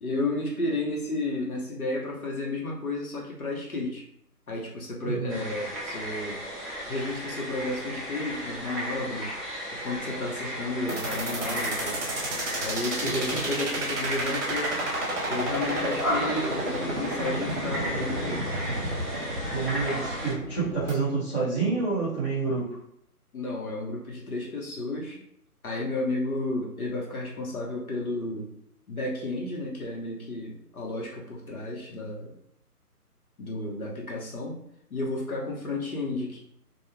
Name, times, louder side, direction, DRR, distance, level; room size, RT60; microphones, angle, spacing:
voice 1, 0.0-4.0 4.5-6.4 6.9-9.4 9.8-12.1 12.6-14.8 15.3-18.6 23.3-25.2 25.6-28.5 28.9-32.4 33.4-34.6 34.9-36.4, left 2 dB, 65° left, -3 dB, 1.0 m, -32 dB
voice 2, 5.0-5.4 13.0-13.4 19.5-22.8, right 4 dB, 20° left, -13 dB, 0.8 m, -28 dB
sound 1, 5.3-20.3, equal, ahead, 0.4 m, -35 dB
sound 2, 10.9-20.9, right 1 dB, 50° right, 0.8 m, -31 dB
2.4 x 2.1 x 3.1 m, 0.74 s
figure-of-eight pair, 150°, 47 cm